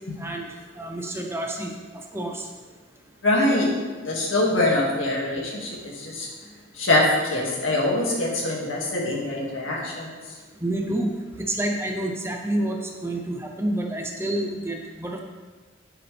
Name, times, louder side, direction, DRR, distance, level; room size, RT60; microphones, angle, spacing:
voice 1, 0.8-1.7 2.1-2.5 10.6-15.2, right 1 dB, 10° right, 2 dB, 0.7 m, -28 dB
voice 2, 3.2-3.7 4.0-6.3 6.7-10.1, left 2 dB, 70° left, -2 dB, 2.2 m, -23 dB
9.9 x 8.1 x 3.4 m, 1.4 s
head